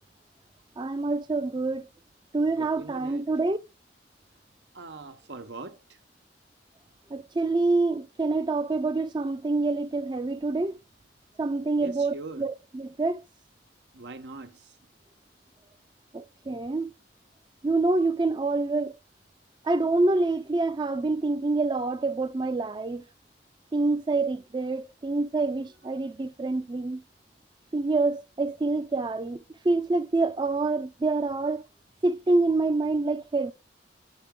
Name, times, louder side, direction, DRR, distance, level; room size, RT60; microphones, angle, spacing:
voice 1, 0.8-1.8 2.3-3.6 7.1-10.8 11.4-13.2 16.1-16.9 17.6-18.9 19.7-23.0 23.7-27.0 27.7-31.6 32.0-33.5, right 3 dB, 25° right, 0.4 m, -26 dB
voice 2, 2.5-3.3 4.7-5.8 11.8-12.5 13.9-14.7, right 3 dB, 90° right, 1.1 m, -41 dB
8.2 x 5.8 x 3.7 m
head